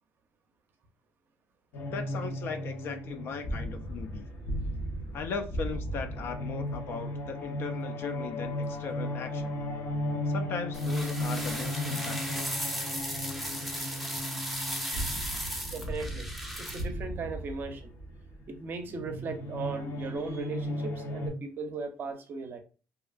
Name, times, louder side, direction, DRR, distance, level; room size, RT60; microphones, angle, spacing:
sound 1, 1.7-21.3, left 1 dB, 70° left, 0.9 m, -35 dB
voice 1, 1.9-4.3 5.1-9.6 10.3-12.5, left 5 dB, 55° left, 0.4 m, -38 dB
sound 2, 10.7-16.8, equal, ahead, 0.6 m, -36 dB
voice 2, 13.6-14.3 15.7-16.3 16.6-17.9 18.5-22.6, right 4 dB, 45° right, 0.6 m, -38 dB
2.8 x 2.3 x 2.4 m
cardioid pair, 105°, 5 cm